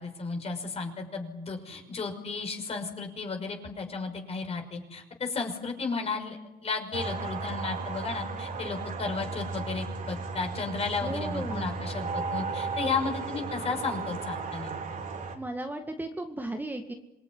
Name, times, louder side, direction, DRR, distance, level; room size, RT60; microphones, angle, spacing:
voice 1, 0.0-14.8, left 4 dB, 35° left, 4 dB, 5.9 m, -34 dB
sound 1, 6.9-15.4, right 4 dB, 50° right, 4.2 m, -35 dB
voice 2, 11.0-11.7 15.3-16.9, right 1 dB, 10° right, 5 dB, 2.0 m, -35 dB
26.5 x 21.0 x 9.7 m, 0.97 s
cardioid pair, 110°, 17 cm